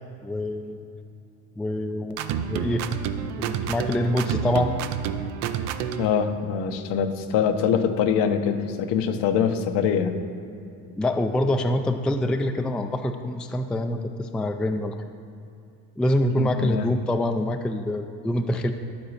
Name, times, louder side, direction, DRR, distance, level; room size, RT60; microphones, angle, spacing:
voice 1, 0.2-0.8 1.6-2.2 2.5-2.9 3.4-4.7 10.9-14.9 16.0-18.7, left 1 dB, ahead, 6 dB, 0.3 m, -25 dB
sound 1, 2.1-6.2, right 8 dB, 75° right, 0.6 m, -29 dB
voice 2, 6.0-10.1 16.4-16.8, left 7 dB, 70° left, 7 dB, 0.9 m, -24 dB
12.0 x 4.0 x 6.5 m, 2.6 s
supercardioid pair, 95°, 43 cm